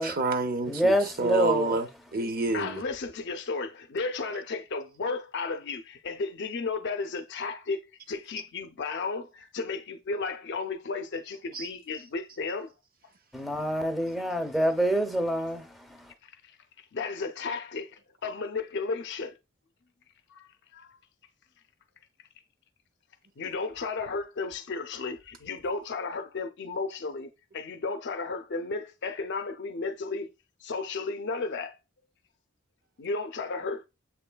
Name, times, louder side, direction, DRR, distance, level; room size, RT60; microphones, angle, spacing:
voice 1, 0.0-2.8 11.5-11.7, right 3 dB, 45° right, 0.6 m, -28 dB
voice 2, 0.7-1.8 13.3-16.1, equal, ahead, 0.6 m, -27 dB
voice 3, 2.5-7.8 8.1-12.7 16.9-17.9 18.2-19.3 20.3-20.4 20.7-20.9 23.4-27.3 27.5-30.3 30.6-31.7 33.0-33.9, left 4 dB, 60° left, 0.6 m, -33 dB
7.1 x 3.1 x 2.2 m
head